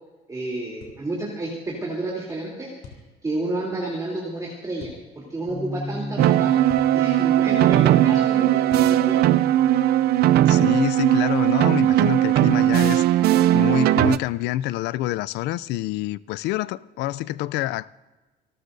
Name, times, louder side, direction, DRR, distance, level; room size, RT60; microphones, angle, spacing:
voice 1, 0.3-2.7 3.2-6.6 6.9-9.2, right 2 dB, 20° right, 3.2 m, -30 dB
sound 1, 0.8-1.0 2.8-3.1 4.8-5.0 6.7-7.0 8.7-9.0, left 5 dB, 65° left, 3.0 m, -43 dB
sound 2, 5.5-11.7, left 2 dB, 20° left, 4.2 m, -38 dB
sound 3, 6.2-14.2, right 13 dB, 70° right, 0.5 m, -18 dB
voice 2, 10.4-13.2 13.5-17.9, left 15 dB, 85° left, 0.5 m, -27 dB
28.5 x 13.0 x 2.7 m
cardioid pair, 110°, 17 cm